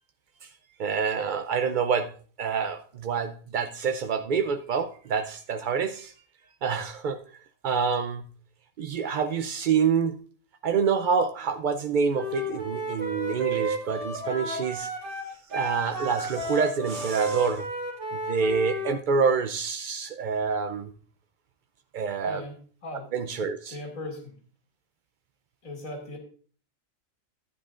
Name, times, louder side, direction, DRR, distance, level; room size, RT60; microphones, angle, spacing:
voice 1, 0.8-2.1 2.4-6.1 6.6-7.2 7.6-8.2 8.8-10.1 10.6-14.9 15.5-17.7 18.1-20.9 21.9-22.4 23.1-23.8, right 6 dB, 70° right, 9 dB, 0.4 m, -27 dB
Wind instrument woodwind instrument, 12.2-19.0, right 1 dB, 40° right, 1.8 m, -32 dB
voice 2, 22.3-22.6 22.8-23.1 23.7-24.3 25.6-26.2, left 2 dB, 80° left, 0 dB, 2.5 m, -38 dB
12.0 x 9.5 x 2.5 m, 0.43 s
omnidirectional pair, 1.4 m